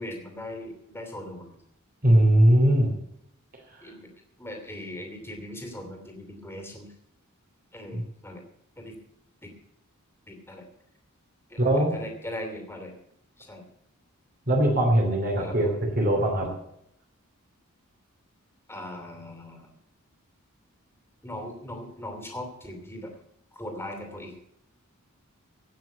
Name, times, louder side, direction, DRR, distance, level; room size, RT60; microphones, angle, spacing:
voice 1, 0.0-1.5 3.8-4.1 4.4-6.9 7.7-8.4 8.8-9.0 9.4-9.5 10.3-10.6 11.5-12.9 13.4-13.6 15.4-15.8 18.7-19.7 21.2-23.1 23.5-24.4, left 1 dB, 10° left, 3 dB, 2.8 m, -39 dB
voice 2, 2.0-2.9 7.9-8.0 11.6-11.9 14.5-16.5, right 1 dB, 45° right, 1 dB, 3.0 m, -21 dB
16.5 x 6.4 x 8.4 m, 0.75 s
head